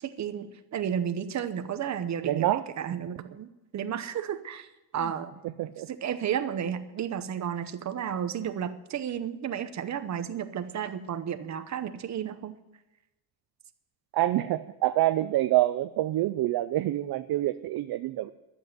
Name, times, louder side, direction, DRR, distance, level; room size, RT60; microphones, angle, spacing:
voice 1, 0.0-4.7 4.9-5.3 5.9-12.6, right 8 dB, 40° right, 9 dB, 0.9 m, -32 dB
voice 2, 2.2-2.6 5.6-5.9 14.1-18.3, right 15 dB, 55° right, 11 dB, 0.5 m, -26 dB
12.0 x 7.9 x 9.1 m, 1.0 s
cardioid pair, 155°, 44 cm